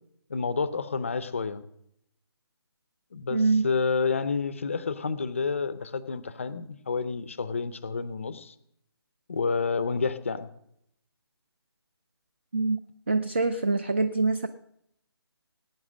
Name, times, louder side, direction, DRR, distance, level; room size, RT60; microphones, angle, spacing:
voice 1, 0.3-1.6 3.1-8.5 9.3-10.5, left 5 dB, 30° left, 14 dB, 0.6 m, -29 dB
voice 2, 3.3-3.7 12.5-12.8 13.1-14.5, right 3 dB, 25° right, 10 dB, 0.4 m, -24 dB
20.0 x 9.2 x 6.2 m, 0.75 s
hypercardioid pair, 175°, 14 cm